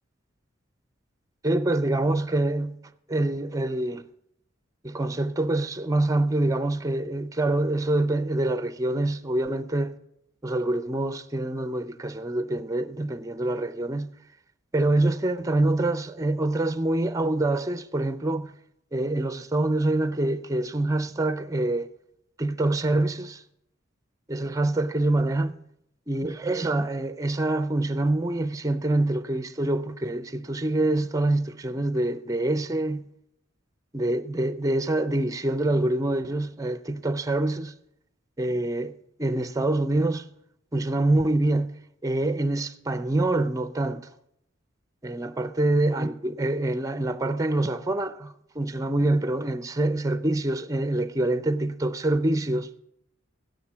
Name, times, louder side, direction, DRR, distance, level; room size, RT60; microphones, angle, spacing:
voice 1, 1.4-4.0 4.8-10.0 10.4-14.1 14.7-18.5 18.9-21.9 22.4-23.4 24.3-25.6 26.1-33.1 33.9-37.7 38.4-40.2 40.7-41.7 42.0-44.1 45.0-52.7, right 2 dB, 15° right, 0.5 m, -25 dB
16.0 x 6.8 x 5.6 m
head